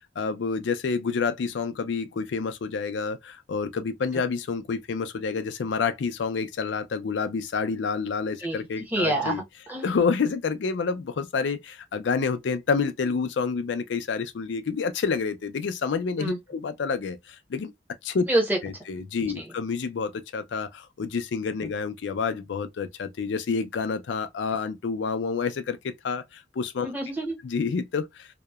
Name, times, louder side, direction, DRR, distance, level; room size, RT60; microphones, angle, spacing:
voice 1, 0.2-9.4 9.8-17.7 18.0-18.2 18.6-26.9 27.4-28.3, left 5 dB, 80° left, 0.4 m, -28 dB
voice 2, 8.4-9.9 16.2-16.4 18.3-18.6 19.2-19.5 26.8-27.4, right 1 dB, 10° right, 0.8 m, -27 dB
2.8 x 2.1 x 2.2 m
head